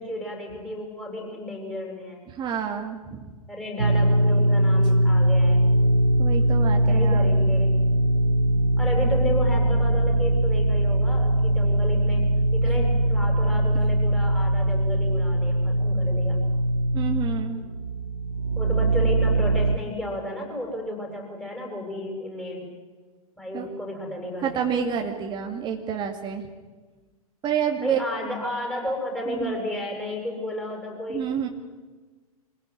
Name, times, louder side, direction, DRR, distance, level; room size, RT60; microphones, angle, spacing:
voice 1, 0.0-2.2 3.5-5.6 6.7-7.7 8.8-16.4 18.6-22.6 23.4-24.8 27.8-31.2, left 1 dB, 5° left, 0 dB, 8.0 m, -33 dB
voice 2, 2.3-3.3 6.2-7.4 16.9-17.6 23.5-23.7 24.4-26.5 27.4-28.0 29.3-29.6 31.1-31.5, right 8 dB, 25° right, 3 dB, 2.3 m, -28 dB
sound 1, 3.8-19.8, right 1 dB, 80° right, 1.3 m, -21 dB
26.0 x 17.0 x 10.0 m, 1.3 s
figure-of-eight pair, 105°, 19 cm